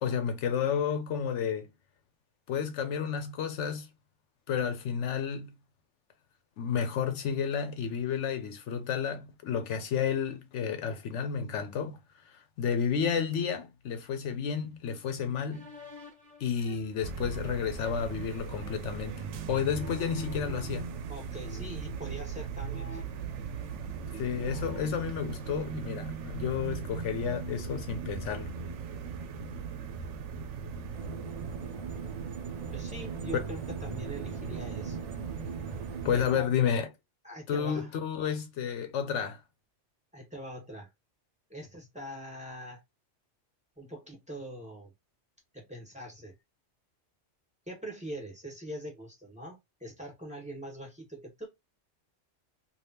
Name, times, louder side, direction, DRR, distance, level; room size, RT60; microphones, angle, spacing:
voice 1, 0.0-1.7 2.5-3.9 4.5-5.5 6.6-12.0 12.2-15.7 16.4-20.9 24.1-28.5 33.3-33.4 36.0-36.9 37.5-39.4, left 7 dB, 75° left, 0.9 m, -31 dB
sound 1, 15.5-20.8 21.4-21.9 22.6-24.0 24.3-26.3, left 1 dB, 35° right, 1.0 m, -47 dB
sound 2, 17.0-36.3, right 5 dB, 80° right, 0.9 m, -39 dB
voice 2, 21.1-23.0 32.7-35.0 36.1-36.5 37.2-37.9 40.1-40.9 41.5-42.8 43.8-44.9 45.5-46.3 47.7-51.5, equal, 5° right, 1.4 m, -43 dB
sound 3, 30.9-36.5, right 6 dB, 50° right, 0.5 m, -42 dB
3.4 x 2.5 x 2.7 m
omnidirectional pair, 1.2 m